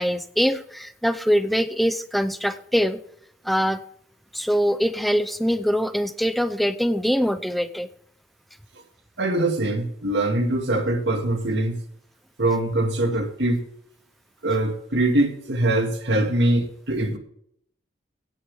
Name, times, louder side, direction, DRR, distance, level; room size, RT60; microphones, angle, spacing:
voice 1, 0.0-3.0 3.4-3.8 4.3-7.9, equal, ahead, 0.6 m, -23 dB
voice 2, 9.2-11.8 12.4-13.6 14.4-17.2, right 1 dB, 80° right, 1.9 m, -23 dB
17.0 x 7.8 x 3.6 m
head